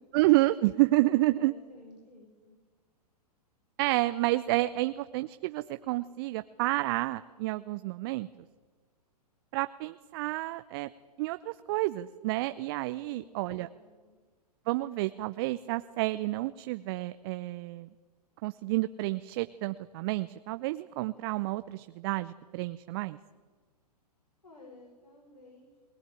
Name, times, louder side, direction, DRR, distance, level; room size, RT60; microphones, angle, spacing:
voice 1, 0.1-1.5 3.8-8.3 9.5-10.9 11.2-13.7 14.7-17.9 18.4-23.2, right 19 dB, 35° right, 13 dB, 0.7 m, -29 dB
voice 2, 1.4-2.6 13.0-14.2 24.4-25.8, left 2 dB, 85° left, -2 dB, 6.1 m, -54 dB
20.0 x 19.0 x 9.1 m, 1.4 s
figure-of-eight pair, 110°, 21 cm